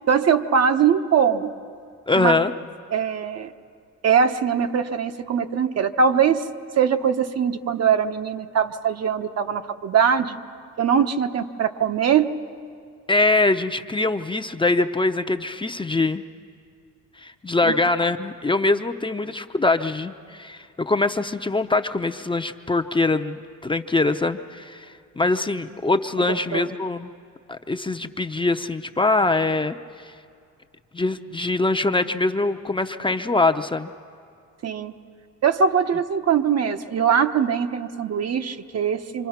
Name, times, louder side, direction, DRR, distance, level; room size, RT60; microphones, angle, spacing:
voice 1, 0.1-1.5 2.2-2.3 2.9-3.5 4.0-6.4 6.8-10.4 10.8-12.3 17.6-17.7 26.3-26.7 34.6-34.9 35.4-39.3, right 7 dB, 55° right, 7 dB, 1.1 m, -21 dB
voice 2, 2.1-2.5 13.1-16.2 17.2-24.9 25.2-27.1 27.5-29.8 30.9-33.9, left 2 dB, 15° left, 7 dB, 0.7 m, -23 dB
26.0 x 26.0 x 5.9 m, 2.3 s
cardioid pair, 90°, 30 cm